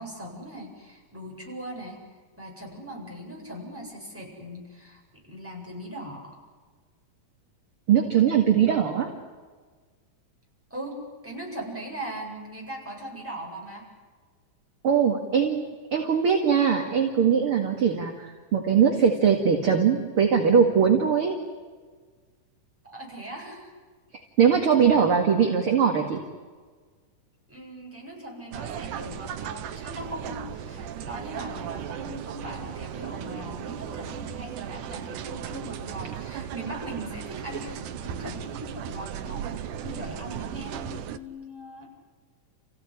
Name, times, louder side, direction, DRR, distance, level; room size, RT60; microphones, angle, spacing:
voice 1, 0.0-2.0 2.4-6.4 10.7-13.9 22.8-23.7 27.5-41.9, right 1 dB, 5° right, -2 dB, 7.9 m, -39 dB
voice 2, 7.9-9.1 14.8-21.4 24.4-26.2, right 7 dB, 45° right, 2 dB, 2.6 m, -21 dB
sound 1, 28.5-41.2, right 9 dB, 80° right, 2.5 m, -36 dB
30.0 x 16.0 x 9.9 m, 1.5 s
omnidirectional pair, 3.7 m